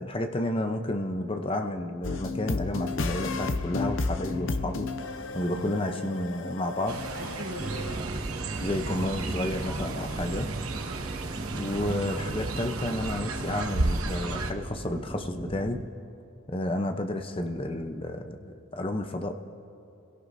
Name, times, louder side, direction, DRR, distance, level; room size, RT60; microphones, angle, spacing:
voice 1, 0.0-4.9 5.3-7.0 8.6-10.5 11.5-15.8 16.5-19.3, left 1 dB, 25° left, 6 dB, 0.7 m, -31 dB
sound 1, 2.0-8.0, left 3 dB, 60° left, 0.7 m, -33 dB
voice 2, 5.5-5.9 7.1-8.2 8.5-9.0 11.8-12.0, right 1 dB, 50° right, -10 dB, 4.2 m, -42 dB
Fowl, 6.9-14.5, right 3 dB, 75° right, 1.0 m, -34 dB
sound 2, 7.6-15.9, right 2 dB, 20° right, 0.4 m, -36 dB
29.5 x 17.0 x 2.7 m, 2.8 s
head